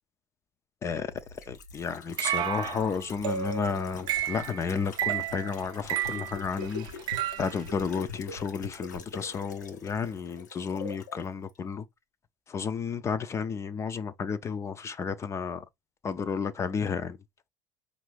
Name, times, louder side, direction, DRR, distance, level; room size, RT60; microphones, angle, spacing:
sound 1, 0.9-11.3 11.5-11.6, left 4 dB, 90° left, 0.8 m, -44 dB
voice 1, 1.5-6.9 7.4-11.8 12.5-15.6 16.0-17.2, left 5 dB, 30° left, 0.5 m, -32 dB
sound 2, 2.2-7.7, right 11 dB, 55° right, 0.6 m, -32 dB
5.3 x 2.5 x 3.2 m
hypercardioid pair, 80°, 9 cm